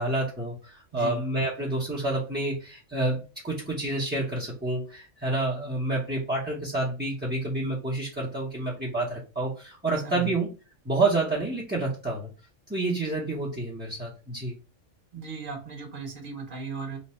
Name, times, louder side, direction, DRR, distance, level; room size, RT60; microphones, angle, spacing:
voice 1, 0.0-10.5 10.8-12.3 12.7-14.6, right 2 dB, 10° right, -6 dB, 0.6 m, -29 dB
voice 2, 10.0-10.3 15.1-17.0, right 4 dB, 50° right, 3 dB, 1.0 m, -36 dB
3.2 x 2.1 x 4.2 m, 0.33 s
omnidirectional pair, 1.2 m